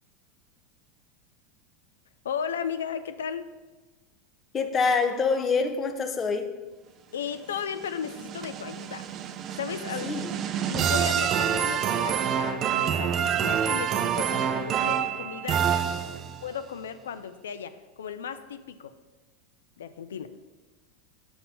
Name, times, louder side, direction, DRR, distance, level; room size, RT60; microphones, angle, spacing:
voice 1, 2.2-3.5 7.1-9.0 9.6-10.1 10.7-15.7 16.4-18.9 19.8-20.3, left 7 dB, 75° left, 11 dB, 0.4 m, -35 dB
voice 2, 4.5-6.5 10.0-10.4, left 4 dB, 30° left, 7 dB, 0.7 m, -26 dB
sound 1, 7.6-16.5, right 8 dB, 40° right, 0.4 m, -27 dB
5.9 x 4.2 x 5.3 m, 1.2 s
figure-of-eight pair, 85°, 0 cm